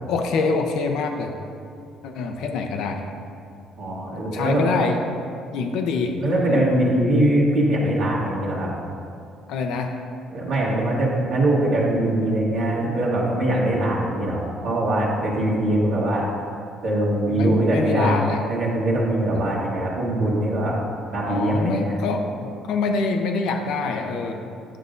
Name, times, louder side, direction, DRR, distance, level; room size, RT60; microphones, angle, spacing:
voice 1, 0.1-1.3 2.0-3.0 4.3-5.0 5.5-6.6 9.5-10.0 13.5-13.8 17.3-18.4 19.3-19.5 21.3-24.5, left 4 dB, 80° left, 4 dB, 0.7 m, -25 dB
voice 2, 3.8-4.7 6.2-8.7 10.3-16.2 16.8-20.8 21.1-22.0, right 1 dB, 75° right, -7 dB, 1.4 m, -22 dB
9.8 x 6.8 x 2.6 m, 2.4 s
cardioid pair, 120°, 0 cm